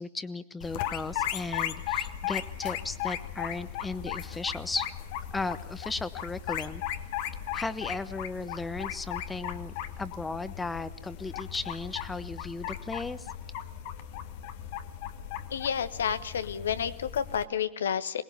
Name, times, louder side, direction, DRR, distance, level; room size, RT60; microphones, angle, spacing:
voice 1, 0.0-4.9 5.3-6.8 7.5-13.3, left 3 dB, 10° left, 14 dB, 1.1 m, -36 dB
sound 1, 0.6-17.4, left 10 dB, 50° left, 1.4 m, -37 dB
voice 2, 15.5-18.2, left 8 dB, 65° left, 13 dB, 1.2 m, -30 dB
22.5 x 20.5 x 6.9 m, 0.82 s
figure-of-eight pair, 95°, 0 cm